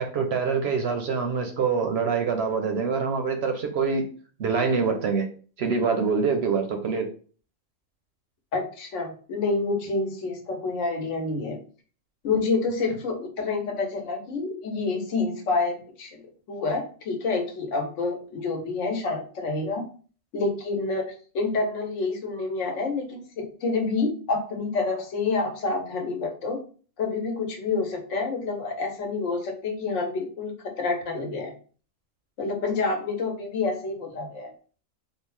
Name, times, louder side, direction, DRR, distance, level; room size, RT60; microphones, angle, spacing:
voice 1, 0.0-4.1 4.4-5.3 5.6-7.1, right 5 dB, 65° right, 5 dB, 0.7 m, -25 dB
voice 2, 8.5-11.6 12.2-16.2 16.5-19.8 20.3-26.6 27.0-31.5 32.4-34.5, left 3 dB, 75° left, 4 dB, 1.1 m, -28 dB
3.7 x 2.1 x 3.1 m, 0.40 s
omnidirectional pair, 1.3 m